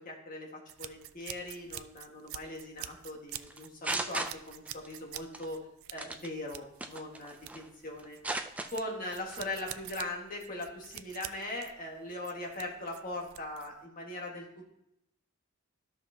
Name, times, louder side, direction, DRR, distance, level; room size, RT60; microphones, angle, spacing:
voice 1, 0.0-5.6 5.9-8.2 8.7-14.7, left 1 dB, 40° left, 0 dB, 1.6 m, -40 dB
sound 1, 0.7-13.8, right 13 dB, 70° right, 0.4 m, -47 dB
sound 2, 3.5-4.9 5.2-5.5 6.0-6.3 6.8-7.7 8.0-8.7 9.1-9.4, right 2 dB, 5° right, 0.4 m, -36 dB
13.5 x 5.7 x 2.8 m, 0.81 s
head